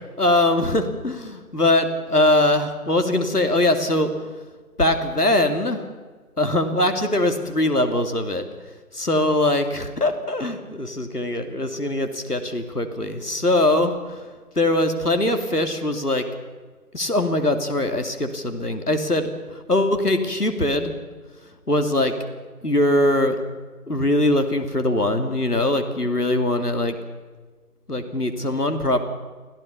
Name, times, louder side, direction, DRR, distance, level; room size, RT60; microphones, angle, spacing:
voice 1, 0.2-4.1 4.8-5.8 6.4-8.5 8.9-14.2 14.5-16.3 16.9-20.9 21.7-22.2 22.6-23.4 23.9-27.0 27.9-29.0, left 1 dB, 80° left, 7 dB, 2.9 m, -22 dB
24.5 x 15.5 x 7.0 m, 1.4 s
figure-of-eight pair, 180°, 45 cm